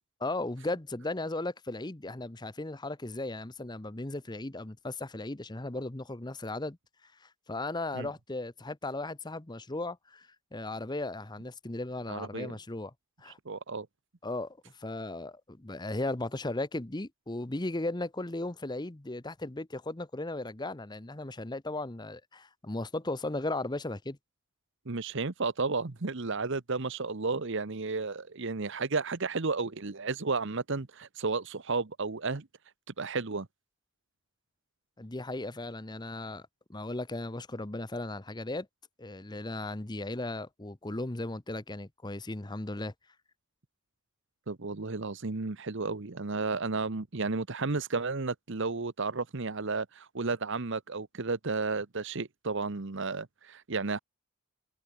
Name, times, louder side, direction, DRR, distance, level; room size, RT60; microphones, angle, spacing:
voice 1, 0.2-6.8 7.2-12.9 13.2-13.4 14.2-24.2 35.0-38.7 39.0-42.9, left 2 dB, 20° left, 0.9 m, -36 dB
voice 2, 12.1-12.5 13.4-13.9 24.9-32.5 33.0-33.5 44.5-54.0, right 4 dB, 55° right, 1.0 m, -33 dB
head